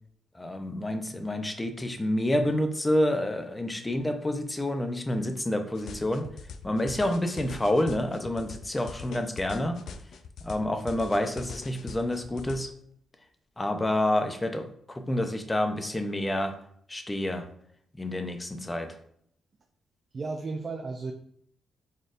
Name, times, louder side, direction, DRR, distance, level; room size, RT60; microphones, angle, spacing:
voice 1, 0.3-6.3 6.6-9.8 10.4-12.7 13.6-16.5 16.9-17.5 18.0-19.0, left 1 dB, 15° left, 6 dB, 0.6 m, -28 dB
sound 1, 5.7-12.6, left 5 dB, 70° left, 0.4 m, -43 dB
voice 2, 20.1-21.1, right 3 dB, 40° right, 4 dB, 0.4 m, -34 dB
4.2 x 3.5 x 2.5 m, 0.66 s
cardioid pair, 95°, 0 cm